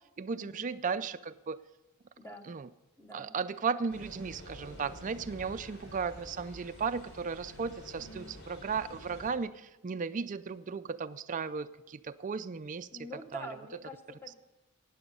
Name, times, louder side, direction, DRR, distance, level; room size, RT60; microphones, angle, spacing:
voice 1, 0.2-1.6 2.5-2.7 3.1-12.9 13.3-13.5, right 5 dB, 35° right, 11 dB, 0.4 m, -35 dB
voice 2, 2.2-2.5 3.0-3.3 8.0-8.3 12.9-14.3, equal, 10° left, 5 dB, 1.1 m, -46 dB
sound 1, 3.9-9.3, equal, 80° left, 3.3 m, -49 dB
15.5 x 9.2 x 5.4 m, 1.0 s
head